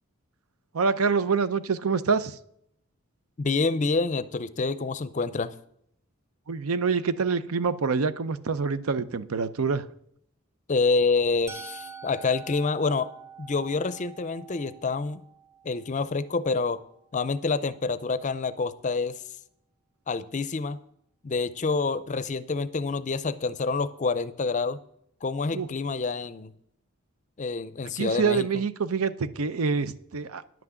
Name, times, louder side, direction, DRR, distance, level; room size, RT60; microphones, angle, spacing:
voice 1, 0.7-2.4 6.5-9.9 25.5-25.7 28.0-30.4, right 5 dB, 80° right, 14 dB, 0.7 m, -26 dB
voice 2, 3.4-5.5 10.7-13.1 13.4-15.2 15.6-16.8 17.1-19.2 20.1-20.8 21.2-24.8 25.2-26.5 27.4-28.5, left 4 dB, 35° left, 15 dB, 0.5 m, -27 dB
Musical instrument, 11.5-17.4, right 6 dB, 15° right, 0.7 m, -46 dB
10.5 x 6.0 x 8.0 m, 0.71 s
head